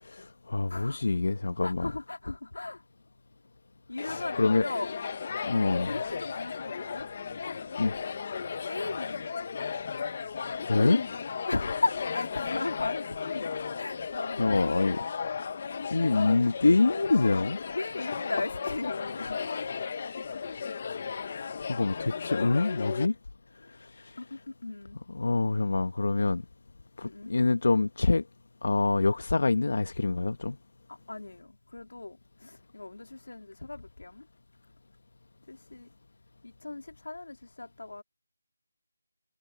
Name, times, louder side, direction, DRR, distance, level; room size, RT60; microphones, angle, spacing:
voice 1, 0.0-1.9 4.0-4.6 5.4-6.0 7.8-7.9 10.7-11.0 14.4-15.0 15.9-17.6 21.7-23.1 23.5-24.2 25.1-26.4 27.0-28.2 28.6-30.6, left 3 dB, 55° left, 1.1 m, -26 dB
voice 2, 0.7-1.0 1.6-2.8 3.9-4.9 5.7-7.1 7.8-7.9 8.7-9.5 11.5-14.6 17.7-19.4 24.2-25.0 27.0-27.3 30.9-34.3 35.5-35.9 36.4-38.0, left 2 dB, 80° left, 3.3 m, -36 dB
sound 1, 4.0-23.1, left 6 dB, 25° left, 0.9 m, -35 dB
figure-of-eight pair, 175°, 0 cm